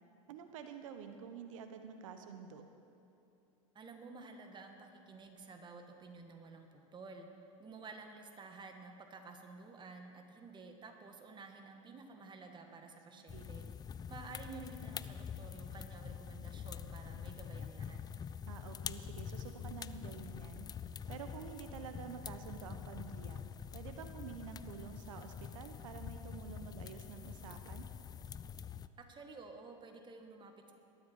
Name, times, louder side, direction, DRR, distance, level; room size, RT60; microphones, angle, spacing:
voice 1, 0.3-2.6 13.1-13.5 18.4-20.7 21.1-23.4 23.7-27.9, right 7 dB, 70° right, 7 dB, 1.0 m, -49 dB
voice 2, 3.7-13.7 14.1-18.0 29.0-30.7, right 3 dB, 25° right, 4 dB, 2.0 m, -52 dB
sound 1, 13.3-28.9, left 7 dB, 20° left, 0.5 m, -46 dB
19.5 x 13.0 x 4.8 m, 2.8 s
hypercardioid pair, 85°, 17 cm